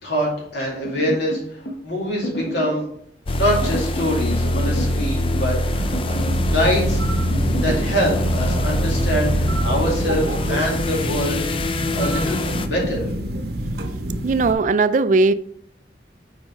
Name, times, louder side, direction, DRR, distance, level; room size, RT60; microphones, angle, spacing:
voice 1, 0.0-2.8 3.3-6.2 6.5-7.0 7.6-11.4 11.9-13.0, equal, 75° left, 2.3 m, -24 dB
sound 1, 0.8-1.8 2.2-2.8 3.6-4.2 4.5-5.6 5.9-6.5 7.3-7.8, equal, 55° left, 1.0 m, -31 dB
sound 2, 3.3-12.7, left 1 dB, 30° left, 0.4 m, -23 dB
sound 3, 5.7-14.5, right 1 dB, 60° right, 0.8 m, -27 dB
voice 2, 14.2-15.3, right 3 dB, 45° right, 0.3 m, -18 dB
5.2 x 5.1 x 3.7 m
head